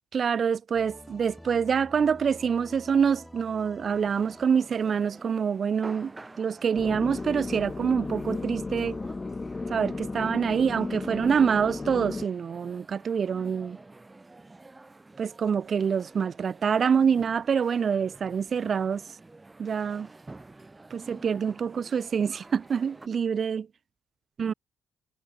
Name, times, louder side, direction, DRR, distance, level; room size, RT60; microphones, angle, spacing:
voice 1, 0.1-6.1 6.4-9.0 9.7-13.8 15.2-19.0 19.6-20.1 20.9-23.7 24.4-24.5, right 7 dB, 50° right, 0.6 m, -26 dB
sound 1, 0.7-6.2, equal, 5° left, 3.6 m, -49 dB
sound 2, 3.9-23.1, right 2 dB, 20° right, 7.4 m, -49 dB
sound 3, 6.7-12.3, left 3 dB, 25° left, 0.9 m, -34 dB
cardioid pair, 90°, 0 cm